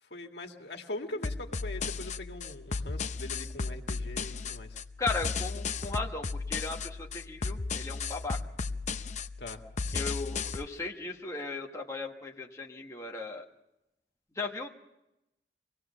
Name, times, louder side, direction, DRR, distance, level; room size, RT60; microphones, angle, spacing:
voice 1, 0.0-4.8 9.4-9.6, left 1 dB, 70° left, 3 dB, 1.9 m, -41 dB
sound 1, 1.2-10.6, left 4 dB, 40° left, 0.7 m, -35 dB
voice 2, 5.0-8.4 9.9-13.4 14.3-14.7, left 3 dB, 20° left, -1 dB, 1.4 m, -37 dB
24.5 x 17.5 x 6.9 m, 0.91 s
head